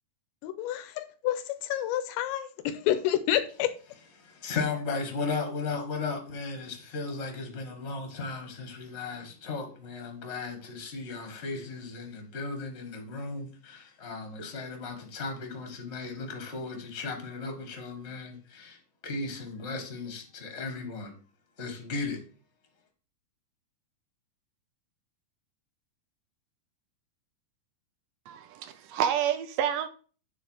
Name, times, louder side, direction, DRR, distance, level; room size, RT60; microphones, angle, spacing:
voice 1, 0.4-3.7, left 12 dB, 90° left, 2.3 m, -29 dB
voice 2, 4.2-18.8 19.0-21.1 21.6-22.2, left 4 dB, 55° left, 0.7 m, -36 dB
voice 3, 28.3-29.9, right 9 dB, 80° right, 2.1 m, -29 dB
9.3 x 3.6 x 5.5 m
omnidirectional pair, 3.9 m